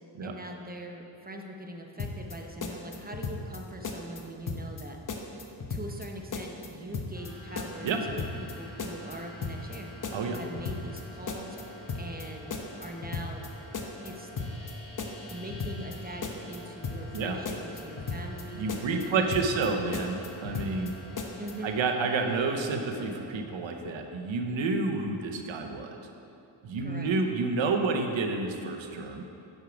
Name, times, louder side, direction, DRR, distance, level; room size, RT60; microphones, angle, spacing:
voice 1, 0.2-5.0 5.7-9.9 10.3-12.5 12.8-13.4 14.0-14.3 15.3-18.7 19.0-19.5 21.4-21.8 26.8-27.1, right 1 dB, 20° right, 2 dB, 0.7 m, -42 dB
sound 1, 2.0-2.4 2.6-3.6 3.8-4.2 4.5-4.8 5.1-6.1 6.3-6.7 6.9-7.3 7.6-8.5 8.8-9.2 9.4-9.8 10.0-11.0 11.3-11.6 11.9-12.2 12.5-13.5 13.7-14.1 14.4-14.7 15.0-16.0 16.2-16.6 16.8-17.2 17.5-18.4 18.7-19.1 19.3-19.7 19.9-20.9 21.2-21.5, left 4 dB, 45° left, 0.9 m, -35 dB
sound 2, 7.1-23.2, left 1 dB, 65° left, 1.7 m, -47 dB
voice 2, 18.5-20.9 21.6-26.0 26.6-29.2, right 3 dB, 85° right, 4 dB, 0.8 m, -29 dB
6.4 x 6.1 x 5.1 m, 2.7 s
cardioid pair, 65°, 45 cm